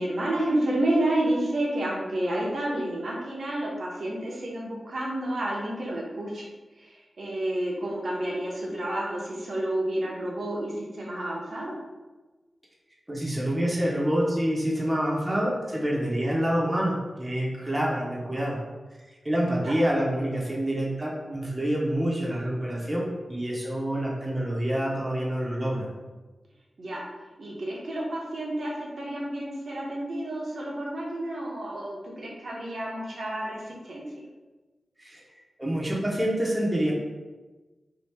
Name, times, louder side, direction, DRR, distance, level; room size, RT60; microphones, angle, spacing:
voice 1, 0.0-6.5 6.8-11.8 19.6-19.7 26.8-27.1 27.4-34.1, right 1 dB, 65° right, -3 dB, 0.7 m, -30 dB
voice 2, 13.1-18.6 19.2-25.9 35.0-35.2 35.6-36.9, equal, 15° right, -4 dB, 0.7 m, -27 dB
2.8 x 2.6 x 3.3 m, 1.2 s
wide cardioid pair, 95°, 0 cm